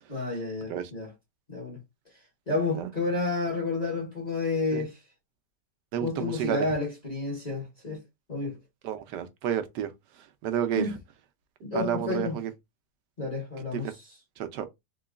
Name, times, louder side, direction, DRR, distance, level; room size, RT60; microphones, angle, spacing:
voice 1, 0.1-1.1 1.5-1.8 2.1-2.2 2.5-5.0 6.0-8.0 8.3-8.6 10.8-10.9 11.6-12.4 13.2-14.0, left 3 dB, 25° left, 1.1 m, -30 dB
voice 2, 5.9-6.7 8.8-11.0 11.7-12.5 13.7-13.9 14.4-14.7, right 10 dB, 75° right, 1.2 m, -31 dB
3.8 x 3.0 x 2.4 m
omnidirectional pair, 1.9 m